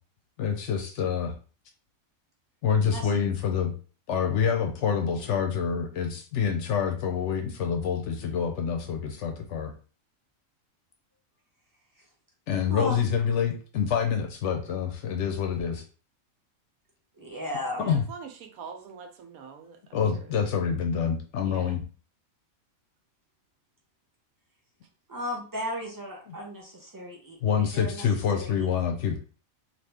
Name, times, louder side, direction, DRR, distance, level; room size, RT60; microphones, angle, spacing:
voice 1, 0.4-1.3 2.6-3.7 4.1-9.7 12.5-15.8 17.9-18.0 19.9-21.8 26.3-26.4 27.4-29.2, left 7 dB, 65° left, 4 dB, 0.8 m, -27 dB
voice 2, 12.7-13.0 17.2-17.9 25.1-28.0 28.3-28.9, left 1 dB, 20° right, -2 dB, 0.7 m, -35 dB
voice 3, 17.8-20.3 21.4-21.8, right 6 dB, 85° right, 5 dB, 1.1 m, -44 dB
2.9 x 2.5 x 3.4 m, 0.38 s
omnidirectional pair, 1.5 m